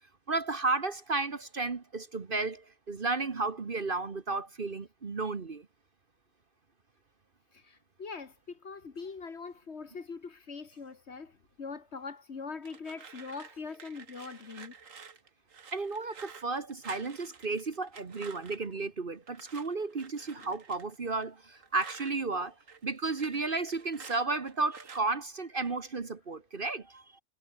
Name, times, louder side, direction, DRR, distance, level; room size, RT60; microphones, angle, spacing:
voice 1, 0.3-5.7 15.7-22.5 22.8-27.2, right 3 dB, 40° right, 1.4 m, -33 dB
voice 2, 8.0-11.3 11.6-14.7, left 4 dB, 50° left, 1.8 m, -42 dB
sound 1, 12.6-18.7 19.3-22.1 22.5-25.0, right 6 dB, 65° right, 2.1 m, -51 dB
omnidirectional pair, 1.5 m